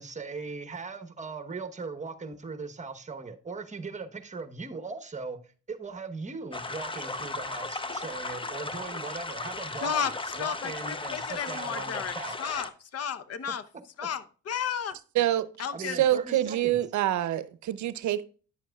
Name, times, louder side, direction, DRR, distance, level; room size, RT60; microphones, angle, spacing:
voice 1, 0.0-10.0 10.3-12.4 15.7-16.8, right 4 dB, 25° right, 1.0 m, -39 dB
sound 1, 6.5-12.7, left 3 dB, 15° left, 0.7 m, -36 dB
voice 2, 9.8-10.1 10.4-12.1 12.4-13.6 14.0-14.9 15.6-16.0, left 8 dB, 55° left, 0.8 m, -33 dB
voice 3, 15.9-18.2, right 12 dB, 70° right, 0.6 m, -26 dB
10.0 x 7.4 x 2.3 m
cardioid pair, 90°, 30 cm